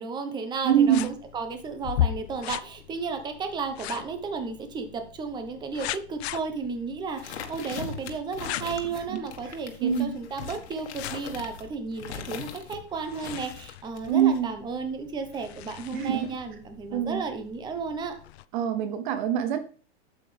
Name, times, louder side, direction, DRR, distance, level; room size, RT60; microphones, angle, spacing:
voice 1, 0.0-18.2, right 5 dB, 15° right, 7 dB, 1.0 m, -33 dB
voice 2, 0.6-1.1 9.8-10.2 14.1-14.5 15.9-16.2 16.9-17.2 18.5-19.6, right 9 dB, 45° right, 11 dB, 0.8 m, -24 dB
sound 1, 0.7-18.4, left 13 dB, 70° left, 0.5 m, -38 dB
sound 2, 7.2-12.8 13.2-14.4, left 7 dB, 85° left, 1.7 m, -40 dB
8.6 x 7.5 x 3.4 m, 0.41 s
supercardioid pair, 155°, 33 cm